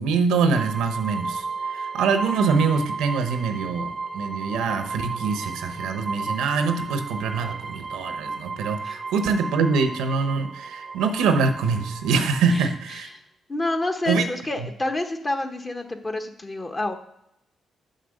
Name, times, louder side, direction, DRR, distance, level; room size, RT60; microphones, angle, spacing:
voice 1, 0.0-1.5 1.7-13.1 14.1-14.2, right 5 dB, 90° right, 8 dB, 0.8 m, -24 dB
sound 1, 0.5-13.0, right 4 dB, 30° right, 0.6 m, -34 dB
voice 2, 13.5-17.0, left 2 dB, 30° left, 5 dB, 1.1 m, -28 dB
6.7 x 5.4 x 6.5 m, 0.79 s
supercardioid pair, 60°, 0 cm